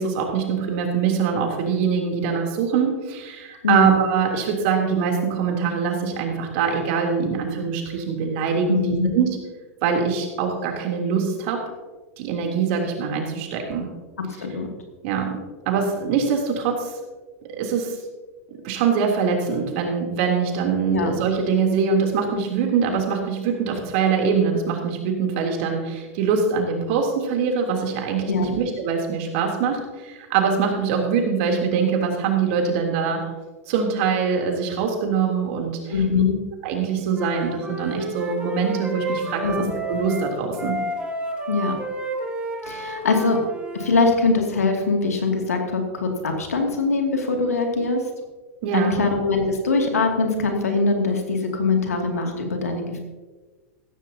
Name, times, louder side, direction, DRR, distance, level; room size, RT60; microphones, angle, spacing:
voice 1, 0.0-9.3 9.8-11.6 12.2-13.9 15.0-15.4 15.6-17.0 17.6-18.0 18.6-33.3 33.7-36.2 36.6-40.7 48.6-49.0, right 6 dB, 55° right, 1 dB, 3.3 m, -23 dB
voice 2, 8.7-9.1 14.4-14.7 20.9-21.1 28.3-28.6 35.9-36.4 39.4-39.7 41.5-41.7 42.7-43.4 43.8-48.0 48.7-53.0, left 4 dB, 90° left, 2 dB, 2.5 m, -22 dB
Wind instrument woodwind instrument, 37.1-44.0, right 1 dB, 15° right, 2.6 m, -30 dB
15.5 x 14.0 x 2.9 m, 1.3 s
hypercardioid pair, 105°, 8 cm